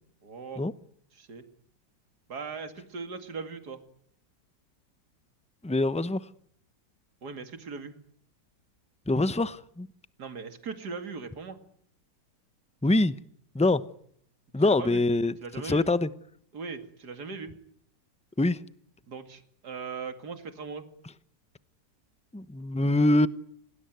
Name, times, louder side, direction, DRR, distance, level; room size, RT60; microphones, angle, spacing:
voice 1, 0.2-0.6 1.1-1.4 2.3-3.8 7.2-7.9 10.2-11.6 14.6-15.0 15.4-15.9 16.5-17.5 19.1-20.8, right 5 dB, 65° right, 2.9 m, -39 dB
voice 2, 5.6-6.3 9.1-9.9 12.8-13.2 13.5-13.8 14.5-15.3 15.6-16.1 18.4-18.6 22.3-23.3, left 2 dB, 5° left, 0.5 m, -24 dB
28.0 x 20.0 x 9.4 m
omnidirectional pair, 1.9 m